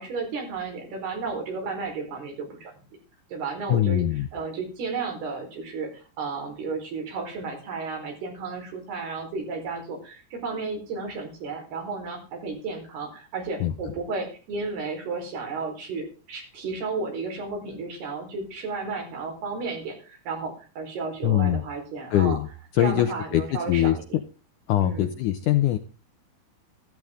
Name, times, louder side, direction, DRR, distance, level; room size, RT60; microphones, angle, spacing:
voice 1, 0.0-2.7 3.3-4.0 4.3-22.4 22.8-24.0 24.8-25.1, right 4 dB, 80° right, 2 dB, 6.3 m, -33 dB
voice 2, 3.7-4.3 13.6-13.7 21.2-21.6 22.1-22.5 22.7-24.2 24.7-25.8, left 12 dB, 75° left, 8 dB, 1.9 m, -22 dB
14.0 x 13.5 x 3.7 m, 0.36 s
omnidirectional pair, 4.5 m